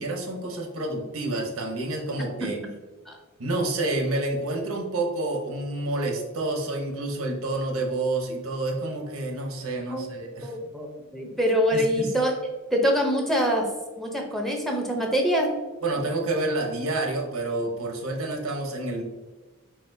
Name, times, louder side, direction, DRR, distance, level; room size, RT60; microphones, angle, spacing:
voice 1, 0.0-2.6 3.4-10.5 11.7-12.1 15.8-19.0, right 2 dB, 90° right, 3 dB, 0.8 m, -29 dB
voice 2, 10.4-12.3 12.7-13.7 14.0-15.5, equal, ahead, 1 dB, 0.6 m, -24 dB
4.4 x 4.1 x 2.6 m, 1.3 s
head